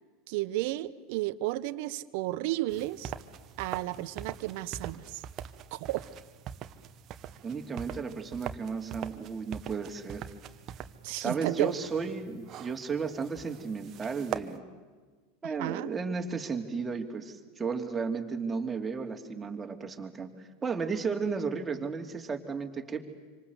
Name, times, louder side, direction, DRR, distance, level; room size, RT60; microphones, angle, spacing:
voice 1, 0.3-3.1 3.6-5.2 5.7-6.0 11.0-11.7 15.4-15.9, right 17 dB, 60° right, 15 dB, 0.9 m, -33 dB
sound 1, 2.7-14.6, right 10 dB, 40° right, 1.3 m, -43 dB
voice 2, 7.4-10.2 11.1-14.6 15.4-20.3 20.6-23.1, right 5 dB, 20° right, 3 dB, 3.0 m, -34 dB
26.0 x 25.5 x 8.2 m, 1.4 s
hypercardioid pair, 90°, 0 cm